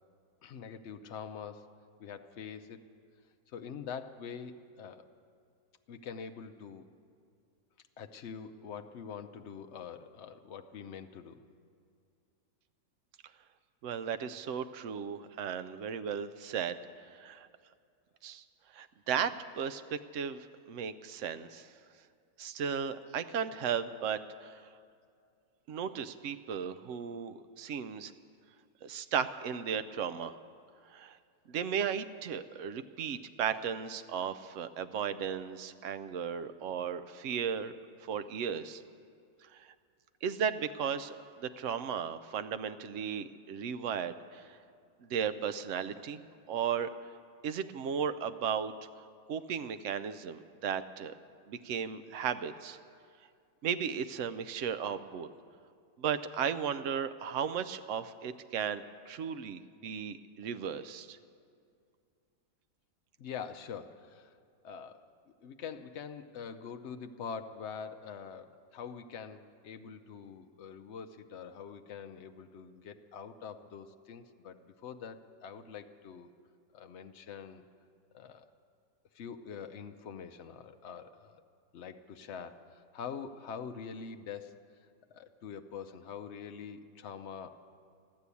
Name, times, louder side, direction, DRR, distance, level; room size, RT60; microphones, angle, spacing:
voice 1, 0.4-1.7 2.0-2.8 3.5-5.0 5.9-6.9 8.0-11.4 63.2-64.4 64.6-65.1 65.4-76.3 76.7-77.6 78.1-78.5 79.1-81.4 81.7-84.5 84.8-87.5, left 6 dB, 65° left, 7 dB, 0.6 m, -44 dB
voice 2, 13.8-16.8 17.0-17.5 18.2-18.4 18.7-21.7 22.4-24.6 25.7-28.1 28.8-30.4 30.9-31.2 31.5-37.7 38.0-38.8 39.5-39.7 40.2-44.6 45.0-46.9 47.4-48.7 49.3-51.1 51.5-52.8 53.6-55.3 56.0-61.2, right 7 dB, 70° right, 11 dB, 0.7 m, -35 dB
14.5 x 11.5 x 8.3 m, 2.3 s
omnidirectional pair, 1.9 m